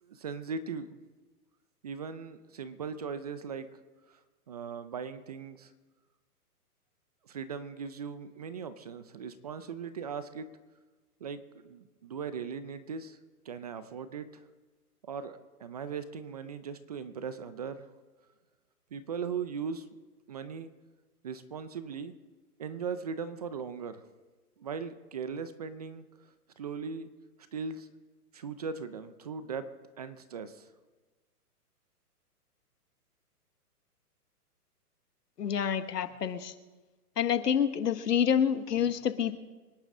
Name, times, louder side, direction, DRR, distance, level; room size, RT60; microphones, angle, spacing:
voice 1, 0.0-1.0 1.8-3.7 4.1-4.2 4.5-5.7 7.2-10.5 11.2-13.2 13.5-14.4 15.1-17.9 18.9-19.9 20.3-20.7 21.2-22.1 22.6-24.0 24.6-26.1 26.6-27.1 27.5-27.9 28.3-29.7 30.0-30.7, right 6 dB, 25° right, 12 dB, 0.5 m, -39 dB
voice 2, 35.4-36.5 37.2-39.4, left 8 dB, 85° left, 11 dB, 1.4 m, -28 dB
26.0 x 11.0 x 3.7 m, 1.3 s
hypercardioid pair, 150°, 47 cm